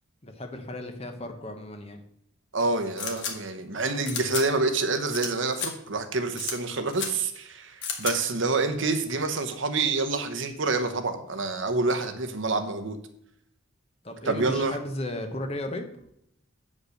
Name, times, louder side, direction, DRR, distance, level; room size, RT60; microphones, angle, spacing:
voice 1, 0.2-2.0 14.0-15.8, left 1 dB, 30° left, 6 dB, 1.0 m, -35 dB
voice 2, 2.5-13.0 14.2-14.8, right 3 dB, 60° right, 8 dB, 0.9 m, -27 dB
sound 1, 3.0-3.3 4.1-4.4 5.1-5.3 5.5-5.7 6.4-6.5 6.9-7.1 7.8-8.1, left 6 dB, 55° left, 1.5 m, -32 dB
8.2 x 5.3 x 6.5 m, 0.74 s
head